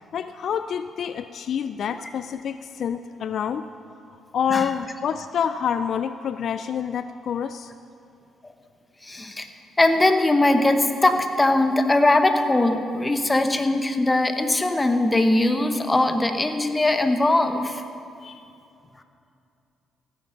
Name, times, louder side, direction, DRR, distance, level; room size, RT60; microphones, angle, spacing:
voice 1, 0.1-3.7 4.3-7.7 18.2-18.4, left 8 dB, 60° left, 11 dB, 0.3 m, -27 dB
voice 2, 9.0-9.5 9.8-17.8, left 2 dB, 20° left, 7 dB, 1.0 m, -20 dB
15.5 x 9.1 x 5.8 m, 2.6 s
cardioid pair, 90°, 0 cm